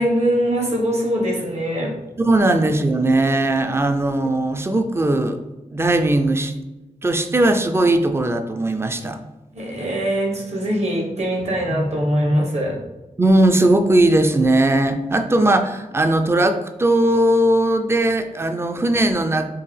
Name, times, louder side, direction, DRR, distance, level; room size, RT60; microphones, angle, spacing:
voice 1, 0.0-1.9 9.5-12.8, equal, 50° right, -1 dB, 1.2 m, -22 dB
voice 2, 2.2-5.4 5.7-6.5 7.0-9.2 13.2-19.5, right 1 dB, 20° right, 7 dB, 0.4 m, -18 dB
4.6 x 3.0 x 3.2 m, 1.0 s
wide cardioid pair, 90°, 14 cm